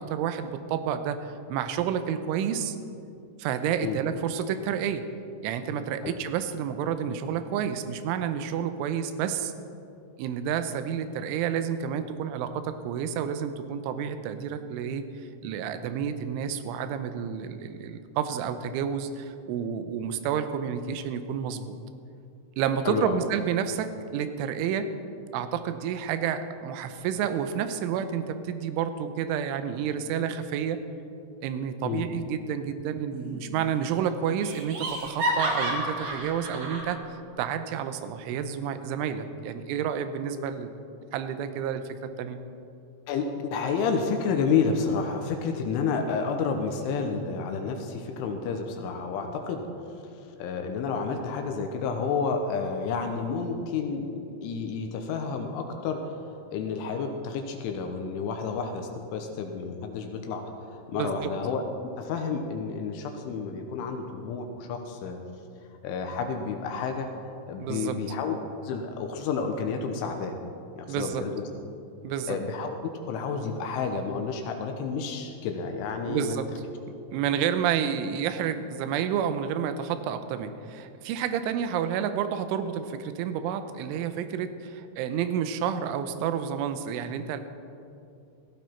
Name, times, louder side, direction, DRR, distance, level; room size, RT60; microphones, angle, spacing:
voice 1, 0.0-2.8 3.4-5.0 5.4-9.5 10.2-15.1 15.4-21.8 22.6-24.9 25.3-30.8 31.4-40.7 41.1-42.4 60.9-61.1 67.6-67.9 70.9-71.2 72.0-72.4 76.1-76.5 77.1-87.4, right 8 dB, 80° right, 10 dB, 3.1 m, -30 dB
voice 2, 22.9-23.2 31.8-32.1 43.1-49.6 50.1-56.1 56.5-60.4 60.7-61.6 62.0-65.2 65.8-68.4 68.6-70.3 70.7-71.4 72.3-72.8 73.1-76.3, left 5 dB, 75° left, 4 dB, 3.2 m, -30 dB
Laughter, 33.1-33.7 33.9-34.0 34.4-36.9, right 1 dB, 55° right, 2.1 m, -30 dB
17.0 x 15.5 x 4.5 m, 2.6 s
omnidirectional pair, 6.0 m